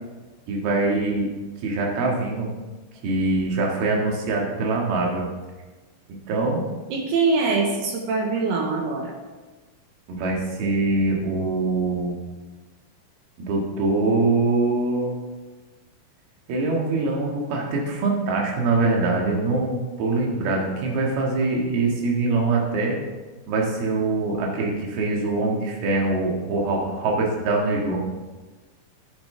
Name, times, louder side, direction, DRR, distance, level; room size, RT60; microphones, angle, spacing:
voice 1, 0.5-1.3 1.6-2.5 3.0-5.3 6.3-6.7 10.1-12.2 13.4-15.1 16.5-23.0 23.5-28.0, right 3 dB, 60° right, -1 dB, 3.3 m, -23 dB
voice 2, 6.9-9.1, right 4 dB, 75° right, 1 dB, 2.5 m, -23 dB
12.0 x 10.5 x 3.4 m, 1.2 s
omnidirectional pair, 6.0 m